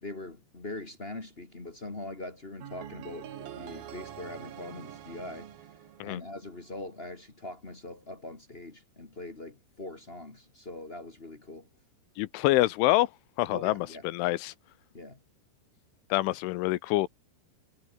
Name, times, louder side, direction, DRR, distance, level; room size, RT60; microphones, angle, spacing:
voice 1, 0.0-5.7 6.0-11.7 13.5-14.1 14.9-15.2, left 2 dB, 60° left, 0.6 m, -42 dB
sound 1, 2.6-6.7, right 10 dB, 55° right, 3.3 m, -45 dB
voice 2, 12.2-13.1 13.4-13.7 14.0-14.5 16.1-17.1, left 18 dB, 85° left, 3.1 m, -26 dB
omnidirectional pair, 5.7 m